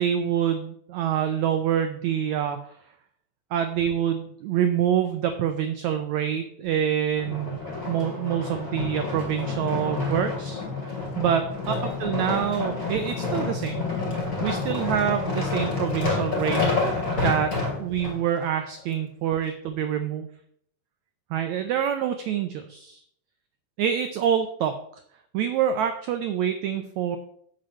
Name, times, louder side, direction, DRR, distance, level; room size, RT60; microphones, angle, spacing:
voice 1, 0.0-2.6 3.5-7.6 7.9-10.6 11.2-13.9 14.4-20.3 21.3-23.0 23.8-24.8 25.3-27.2, right 9 dB, 90° right, 8 dB, 1.6 m, -26 dB
sound 1, 7.2-18.2 18.8-18.9, left 3 dB, 25° left, 3.1 m, -28 dB
7.6 x 5.6 x 7.5 m, 0.69 s
omnidirectional pair, 4.1 m